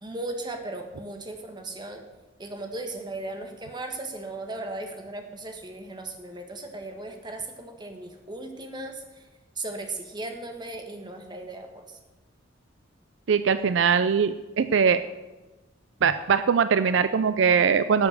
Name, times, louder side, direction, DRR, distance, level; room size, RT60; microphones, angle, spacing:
voice 1, 0.0-2.0 2.4-9.3 9.5-11.8, right 2 dB, 25° right, 4 dB, 1.4 m, -37 dB
voice 2, 13.3-15.0 16.0-18.1, right 6 dB, 65° right, 12 dB, 0.4 m, -21 dB
12.0 x 7.1 x 6.7 m, 1.1 s
head